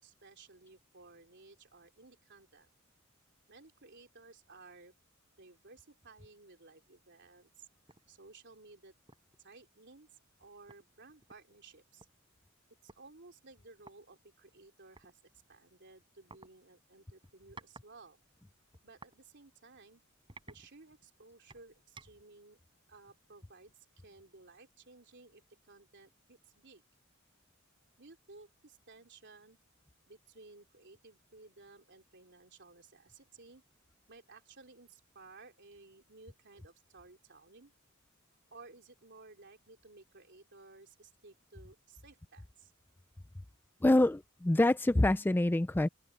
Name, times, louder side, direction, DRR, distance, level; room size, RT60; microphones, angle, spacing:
voice 1, 0.0-2.7 3.5-4.9 5.4-7.7 8.1-9.0 9.4-12.1 12.8-18.2 18.8-20.0 20.4-22.6 22.9-26.9 28.0-29.6 30.1-33.6 34.1-37.7 38.5-42.7, right 3 dB, 55° right, 3.5 m, -57 dB
sound 1, 7.9-8.1 8.5-8.7 9.1-9.4 10.3-10.4 10.7-12.1 12.9-13.0 13.8-14.0 15.0-15.1 16.3-16.5 17.2-17.9 18.2-19.2 19.7-19.8 20.3-21.1 21.5-22.3, right 3 dB, 25° right, 6.2 m, -55 dB
voice 2, 43.8-45.9, left 1 dB, 10° left, 0.3 m, -26 dB
open air
head